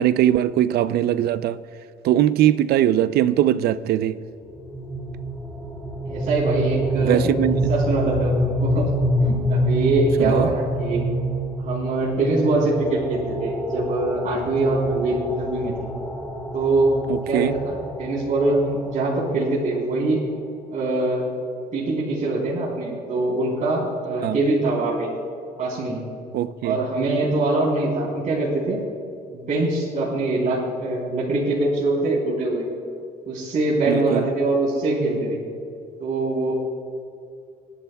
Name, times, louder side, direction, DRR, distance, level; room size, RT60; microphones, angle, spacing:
voice 1, 0.0-1.6 2.0-4.2 7.0-7.5 10.2-10.5 17.1-17.5 24.2-24.4 26.3-26.8 33.9-34.3, right 12 dB, 70° right, 0.5 m, -20 dB
sound 1, 4.6-19.4, equal, 10° left, 1.8 m, -26 dB
voice 2, 6.1-7.3 7.7-8.8 9.2-11.1 11.6-15.7 16.5-17.0 17.3-20.2 20.7-21.3 21.7-25.1 25.6-26.1 26.6-28.8 29.3-32.7 33.3-35.4 36.0-36.5, right 2 dB, 50° right, 3.8 m, -23 dB
29.0 x 11.5 x 2.3 m
cardioid pair, 110°, 17 cm